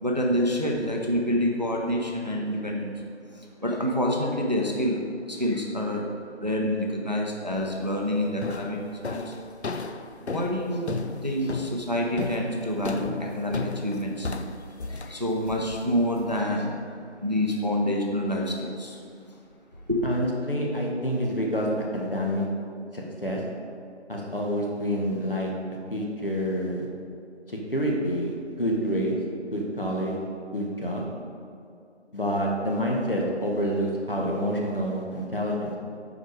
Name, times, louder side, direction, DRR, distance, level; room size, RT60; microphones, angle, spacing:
voice 1, 0.0-3.0 3.3-5.0 5.3-6.1 6.4-9.3 10.2-10.9 11.2-14.3 14.8-16.8 17.2-19.0 19.9-20.1, equal, 35° right, 0 dB, 0.7 m, -27 dB
sound 1, 7.6-7.9 8.4-16.4, left 3 dB, 70° left, 0.5 m, -35 dB
voice 2, 20.0-21.7 21.9-22.5 22.9-23.4 24.1-25.5 25.9-26.9 27.5-29.1 29.5-30.2 30.5-31.0 32.1-35.7, equal, 50° left, -2 dB, 1.2 m, -27 dB
7.6 x 4.9 x 4.7 m, 2.5 s
figure-of-eight pair, 175°, 35 cm